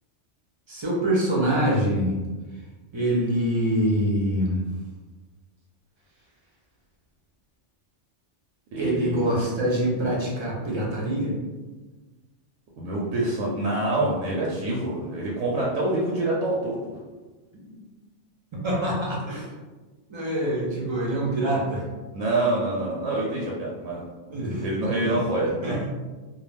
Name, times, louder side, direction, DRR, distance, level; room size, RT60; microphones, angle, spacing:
voice 1, 0.7-2.2 2.9-4.6 8.8-11.4 18.5-19.5 20.1-21.8 24.3-25.2 25.6-25.9, right 1 dB, 40° right, -5 dB, 0.4 m, -25 dB
voice 2, 8.7-9.4 12.8-17.0 22.1-24.0 24.4-25.6, right 2 dB, 85° right, -4 dB, 0.9 m, -26 dB
2.3 x 2.1 x 3.2 m, 1.3 s
omnidirectional pair, 1.2 m